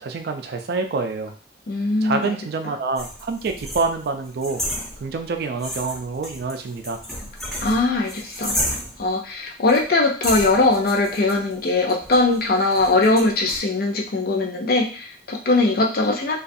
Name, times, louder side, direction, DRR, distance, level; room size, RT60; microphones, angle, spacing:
voice 1, 0.0-1.3 2.0-4.6 5.0-7.0, right 4 dB, 60° right, 5 dB, 0.4 m, -26 dB
voice 2, 1.7-2.3 7.6-8.5 9.0-16.4, left 2 dB, 55° left, 2 dB, 0.5 m, -20 dB
sound 1, 3.0-5.3 5.6-9.1 9.7-9.8 10.2-13.6, equal, ahead, 0.6 m, -32 dB
2.4 x 2.3 x 2.6 m, 0.40 s
head